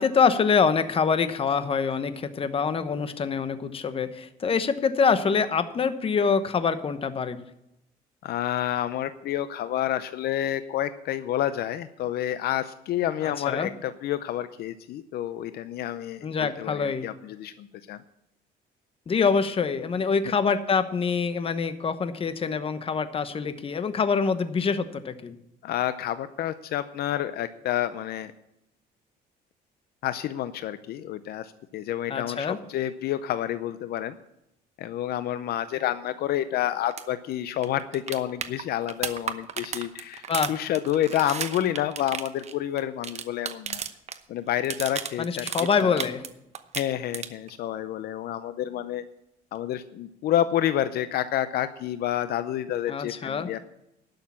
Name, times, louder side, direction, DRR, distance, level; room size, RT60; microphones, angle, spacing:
voice 1, 0.0-7.4 13.2-13.7 16.2-17.1 19.1-25.3 32.1-32.6 40.3-40.5 45.2-46.3 52.9-53.5, left 5 dB, 35° left, 11 dB, 1.0 m, -25 dB
voice 2, 8.2-18.0 25.6-28.3 30.0-34.1 34.8-43.8 44.3-45.5 45.8-46.0 46.8-49.0 49.5-53.6, left 12 dB, 70° left, 12 dB, 0.6 m, -29 dB
sound 1, 36.9-37.0 37.3-37.4 37.6-44.2 44.5-46.3 46.5-47.5 49.6-49.7, right 7 dB, 40° right, 0.9 m, -34 dB
11.5 x 6.6 x 8.5 m, 0.83 s
cardioid pair, 110°, 17 cm